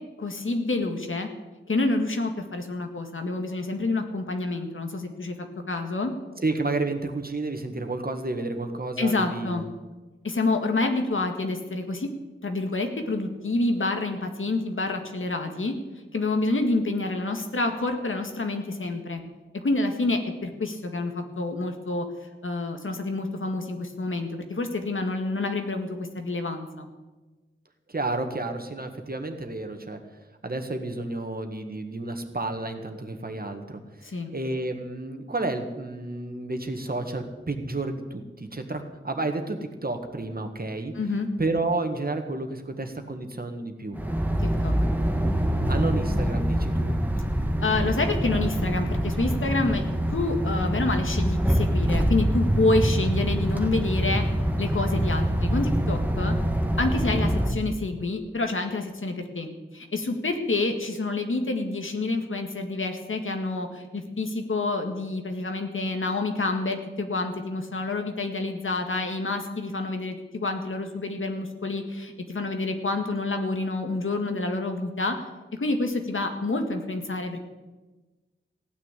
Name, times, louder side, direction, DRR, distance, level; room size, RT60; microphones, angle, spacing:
voice 1, 0.2-1.3 1.7-6.1 9.0-9.6 10.2-12.1 12.4-15.7 16.1-19.2 19.5-22.1 22.4-26.9 34.0-34.3 41.0-41.3 44.4-44.7 47.6-54.2 54.6-56.3 56.8-75.2 75.6-77.5, left 2 dB, 80° left, 5 dB, 1.9 m, -28 dB
voice 2, 6.4-9.7 27.9-30.0 30.4-40.9 41.4-44.0 45.7-47.0, right 2 dB, 45° right, 6 dB, 1.8 m, -31 dB
sound 1, 43.9-57.5, equal, 10° right, 1.6 m, -25 dB
15.5 x 9.5 x 8.4 m, 1.2 s
wide cardioid pair, 65°, 20 cm